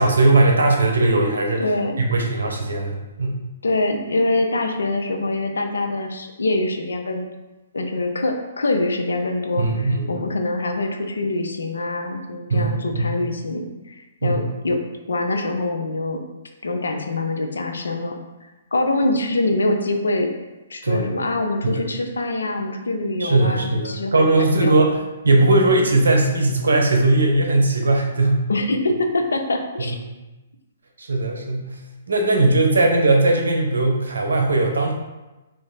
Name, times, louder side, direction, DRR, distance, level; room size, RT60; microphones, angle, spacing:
voice 1, 0.0-1.6 2.0-3.4 9.6-10.1 12.5-13.2 14.2-14.4 20.8-21.1 21.6-21.9 23.2-28.5 29.8-30.1 31.0-31.8 32.1-34.9, right 2 dB, 80° right, 2 dB, 0.7 m, -19 dB
voice 2, 1.6-2.0 3.6-7.2 7.7-14.8 15.1-16.2 16.6-20.3 20.7-24.1 24.6-24.9 25.3-25.4 28.5-30.0, left 2 dB, 80° left, 4 dB, 0.5 m, -24 dB
3.0 x 2.5 x 3.8 m, 1.1 s
hypercardioid pair, 130°, 0 cm